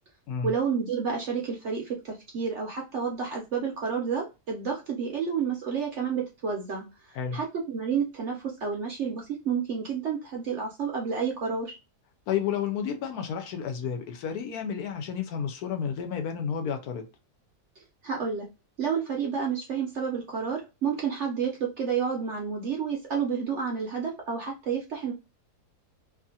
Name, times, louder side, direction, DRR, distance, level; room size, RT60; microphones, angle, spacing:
voice 1, 0.4-11.8 18.0-18.5 18.8-25.1, right 6 dB, 60° right, 0.7 m, -30 dB
voice 2, 12.3-17.1, left 7 dB, 75° left, 1.1 m, -31 dB
2.8 x 2.4 x 2.6 m
omnidirectional pair, 1.7 m